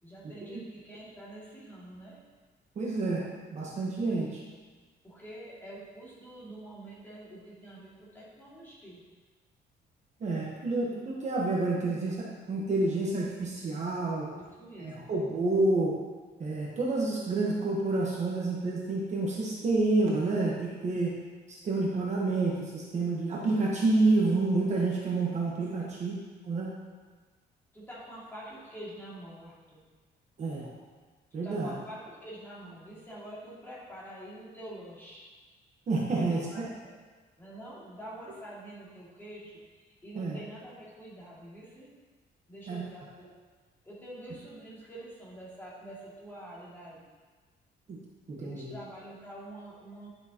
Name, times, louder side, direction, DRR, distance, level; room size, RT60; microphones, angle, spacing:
voice 1, 0.0-2.2 4.1-4.3 5.0-9.0 14.3-15.1 25.8-26.0 27.7-29.8 31.3-35.3 36.1-36.9 37.4-39.5 39.8-41.9 42.5-43.3 43.8-47.0 48.4-50.1, right 1 dB, 10° left, -8 dB, 2.3 m, -46 dB
voice 2, 2.8-3.2 3.5-4.3 10.2-14.3 14.8-16.0 16.4-21.2 21.5-26.1 26.4-26.7 30.4-30.7 31.3-31.7 35.9-36.4 40.1-40.4 42.7-42.8 47.9-48.0 48.3-48.7, right 2 dB, 40° right, -3 dB, 1.2 m, -28 dB
10.0 x 6.8 x 2.9 m, 1.4 s
cardioid pair, 155°, 18 cm